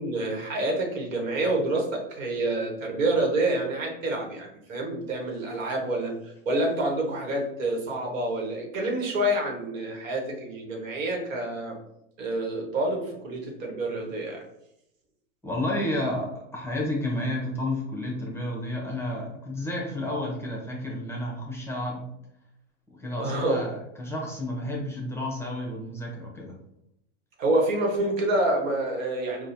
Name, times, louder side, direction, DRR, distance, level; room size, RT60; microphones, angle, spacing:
voice 1, 0.0-11.8 12.2-14.4 23.2-23.6 27.4-29.5, right 1 dB, 80° right, 0 dB, 1.1 m, -27 dB
voice 2, 15.4-22.0 22.9-26.5, left 1 dB, 5° left, -2 dB, 0.7 m, -31 dB
4.2 x 2.2 x 2.6 m, 0.81 s
hypercardioid pair, 110°, 38 cm